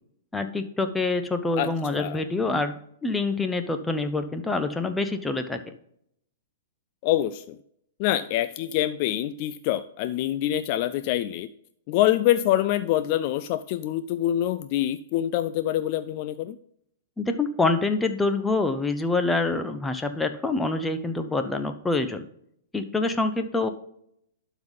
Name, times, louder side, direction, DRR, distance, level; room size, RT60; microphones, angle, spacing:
voice 1, 0.3-5.6 17.2-22.3 22.7-23.7, left 3 dB, 10° left, 8 dB, 0.8 m, -26 dB
voice 2, 1.6-2.2 7.0-7.6 8.0-11.5 11.9-16.6, left 13 dB, 45° left, 12 dB, 0.4 m, -25 dB
12.0 x 4.1 x 5.3 m, 0.70 s
figure-of-eight pair, 110°, 0 cm